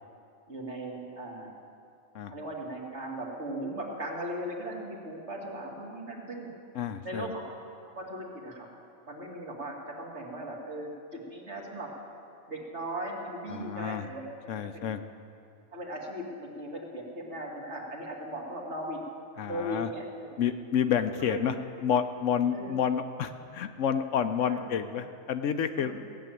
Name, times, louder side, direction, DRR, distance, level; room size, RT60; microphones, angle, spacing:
voice 1, 0.5-1.5 2.3-6.5 7.0-7.4 7.8-8.7 9.1-11.9 12.5-14.9 15.7-19.0 19.5-20.4 21.3-21.5 22.5-22.8 24.4-24.6 25.8-26.1, right 1 dB, 55° right, -2 dB, 2.4 m, -38 dB
voice 2, 6.7-7.3 13.5-14.1 14.5-15.0 19.4-19.9 20.4-21.5 21.8-25.9, left 8 dB, 70° left, 9 dB, 1.0 m, -29 dB
16.5 x 7.3 x 9.2 m, 2.5 s
omnidirectional pair, 1.4 m